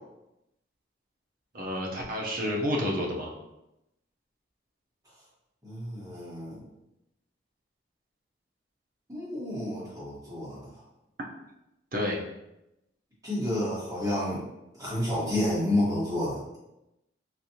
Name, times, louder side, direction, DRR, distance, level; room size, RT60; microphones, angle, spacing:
voice 1, 1.5-3.3 11.9-12.2, left 1 dB, 45° right, -1 dB, 0.7 m, -29 dB
voice 2, 5.6-6.6 9.1-10.7 13.2-14.4 14.8-16.6, left 1 dB, 20° right, -9 dB, 1.4 m, -30 dB
4.1 x 2.5 x 2.8 m, 0.89 s
head